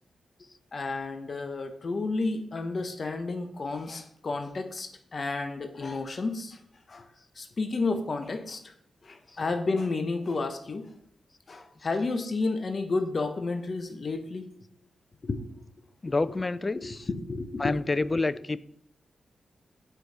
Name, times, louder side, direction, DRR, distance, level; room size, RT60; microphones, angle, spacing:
voice 1, 0.7-6.6 6.9-7.0 7.4-8.7 9.0-10.8 11.5-14.6 15.2-15.4 16.1-16.2 16.7-17.7, left 3 dB, 55° left, 7 dB, 0.7 m, -31 dB
voice 2, 16.0-17.1 17.6-18.6, left 3 dB, 35° left, 17 dB, 0.3 m, -28 dB
4.7 x 4.4 x 5.4 m, 0.68 s
cardioid pair, 50°, 0 cm